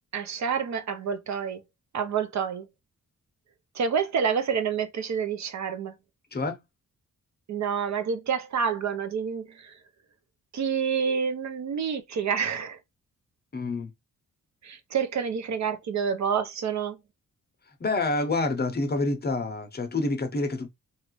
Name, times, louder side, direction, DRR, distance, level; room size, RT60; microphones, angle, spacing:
voice 1, 0.1-1.6 1.9-2.7 3.7-5.9 7.5-9.8 10.5-12.8 14.6-17.0, right 6 dB, 60° right, 0.5 m, -28 dB
voice 2, 13.5-13.9 17.8-20.7, left 2 dB, 30° left, 0.6 m, -27 dB
3.0 x 2.4 x 3.0 m
wide cardioid pair, 130°, 33 cm